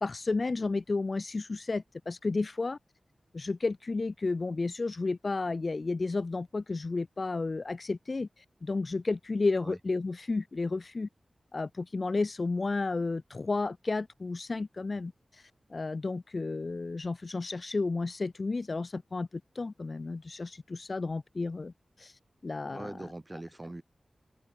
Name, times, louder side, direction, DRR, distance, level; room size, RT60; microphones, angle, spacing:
voice 1, 0.0-2.8 3.3-11.1 11.5-22.9, left 3 dB, 50° left, 0.9 m, -32 dB
voice 2, 22.7-23.8, right 2 dB, 25° right, 4.2 m, -42 dB
open air
wide cardioid pair, 80°, 0 cm